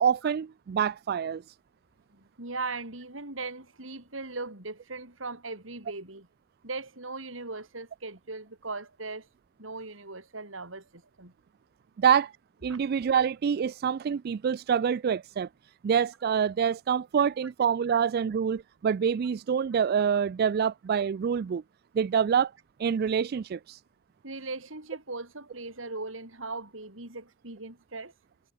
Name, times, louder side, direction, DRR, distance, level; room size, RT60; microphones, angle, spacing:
voice 1, 0.0-1.4 12.0-12.3 12.6-15.5 15.8-21.6 21.9-22.5 22.8-23.8, right 7 dB, 50° right, 0.3 m, -26 dB
voice 2, 2.1-6.3 6.6-9.3 9.6-11.3 12.7-12.8 17.9-18.0 24.2-28.1, right 3 dB, 80° right, 5.2 m, -39 dB
head